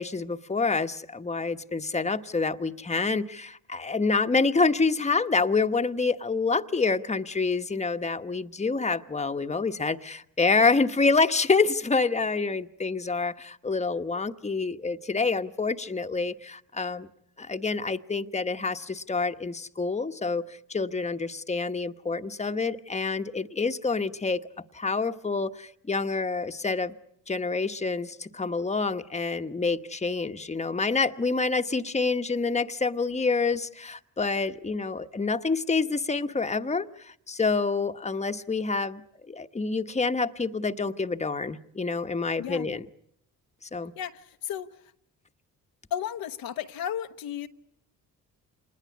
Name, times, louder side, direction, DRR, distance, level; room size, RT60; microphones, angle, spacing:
voice 1, 0.0-17.1 17.4-24.4 24.7-26.9 27.3-42.9 43.6-43.9, left 4 dB, 20° left, 1.2 m, -27 dB
voice 2, 44.0-44.7 45.9-47.5, left 10 dB, 70° left, 1.1 m, -33 dB
27.0 x 20.5 x 8.6 m
supercardioid pair, 50°, 36 cm